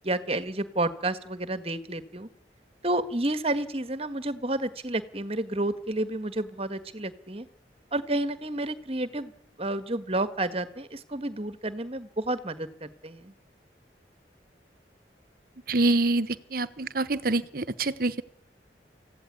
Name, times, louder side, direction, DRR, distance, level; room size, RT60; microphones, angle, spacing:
voice 1, 0.0-2.3 2.8-7.5 7.9-9.3 9.6-13.3, right 1 dB, 35° right, 12 dB, 1.6 m, -30 dB
voice 2, 15.7-18.2, right 2 dB, 55° right, 16 dB, 1.1 m, -26 dB
25.5 x 16.0 x 9.6 m, 0.73 s
head